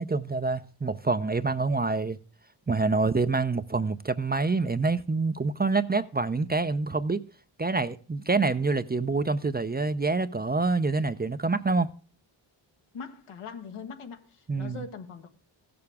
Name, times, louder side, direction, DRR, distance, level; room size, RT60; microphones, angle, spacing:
voice 1, 0.0-2.2 2.7-7.3 7.6-11.9 14.5-14.8, right 3 dB, 20° right, 0.5 m, -26 dB
voice 2, 12.9-15.3, left 5 dB, 80° left, 1.5 m, -41 dB
15.5 x 6.9 x 3.5 m
cardioid pair, 55°, 50 cm